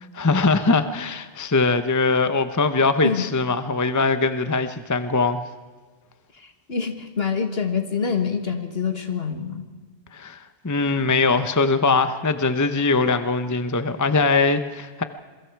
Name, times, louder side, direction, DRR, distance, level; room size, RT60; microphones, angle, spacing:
voice 1, 0.2-5.4 10.1-15.0, left 3 dB, 15° left, 10 dB, 0.9 m, -21 dB
voice 2, 6.4-9.7, left 6 dB, 60° left, 6 dB, 2.2 m, -26 dB
27.0 x 23.0 x 4.7 m, 1.4 s
omnidirectional pair, 1.2 m